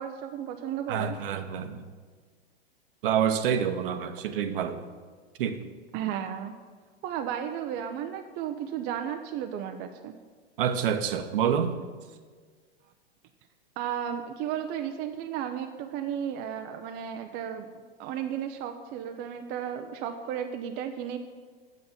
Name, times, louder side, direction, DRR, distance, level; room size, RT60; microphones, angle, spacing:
voice 1, 0.0-1.2 5.9-6.5 7.0-10.1 13.8-17.7 18.0-21.2, right 9 dB, 30° right, 6 dB, 0.5 m, -34 dB
voice 2, 0.9-1.8 3.0-4.8 5.4-5.6 10.6-11.7, right 8 dB, 55° right, 9 dB, 1.0 m, -27 dB
8.2 x 6.5 x 7.0 m, 1.5 s
hypercardioid pair, 115°, 31 cm